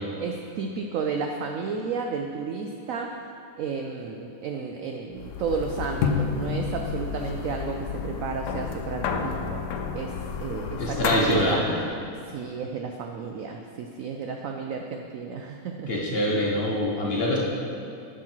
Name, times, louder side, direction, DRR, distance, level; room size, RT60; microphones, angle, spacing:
voice 1, 0.2-3.1 3.6-9.6 9.9-11.6 12.2-15.9, right 5 dB, 75° right, 3 dB, 0.7 m, -32 dB
sound 1, 5.2-11.7, left 6 dB, 75° left, 1.2 m, -30 dB
voice 2, 10.8-11.6 15.9-17.4, left 1 dB, 40° left, -3 dB, 1.2 m, -24 dB
9.7 x 6.2 x 4.5 m, 2.6 s
omnidirectional pair, 1.9 m